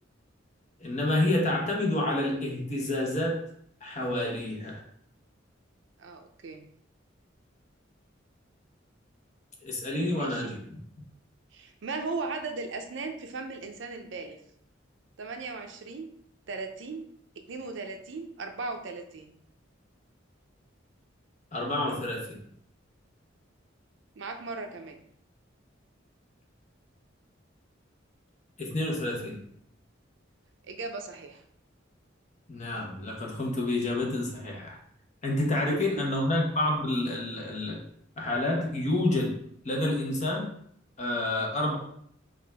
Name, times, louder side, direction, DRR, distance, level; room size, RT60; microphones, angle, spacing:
voice 1, 0.8-3.4 3.8-4.8 9.6-10.8 21.5-22.4 28.6-29.4 32.5-34.8 35.2-37.8 38.2-39.4 39.6-40.5 41.0-41.8, left 1 dB, 40° left, -1 dB, 1.0 m, -29 dB
voice 2, 6.0-6.7 10.1-10.6 11.5-14.4 15.2-16.1 16.5-17.0 17.5-19.3 24.2-25.0 30.6-31.4 35.7-36.1, right 3 dB, 70° right, 5 dB, 0.5 m, -37 dB
5.1 x 2.5 x 3.4 m, 0.67 s
head